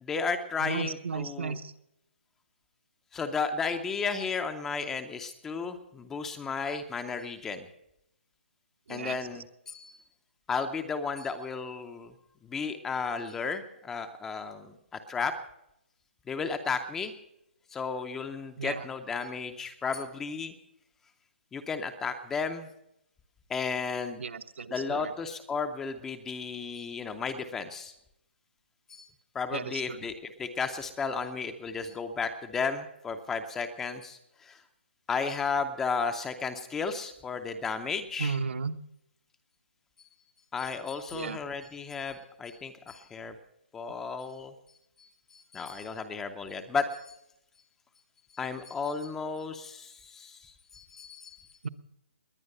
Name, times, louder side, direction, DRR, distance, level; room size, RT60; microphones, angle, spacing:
voice 1, 0.0-1.6 3.1-7.7 8.9-10.0 10.5-12.1 12.4-14.7 15.1-15.4 16.3-17.1 17.7-20.5 21.5-22.7 23.5-24.2 24.7-27.9 28.9-29.1 29.3-34.6 35.1-38.4 40.5-43.4 43.7-44.5 45.0-47.2 48.3-51.5, left 5 dB, 5° left, 8 dB, 0.5 m, -34 dB
voice 2, 0.6-1.7 8.9-9.2 18.6-18.9 24.2-25.1 29.5-30.0 38.2-38.8 41.1-41.4 51.6-51.7, right 5 dB, 65° right, 9 dB, 1.0 m, -34 dB
20.5 x 9.7 x 6.6 m, 0.80 s
hypercardioid pair, 175°, 7 cm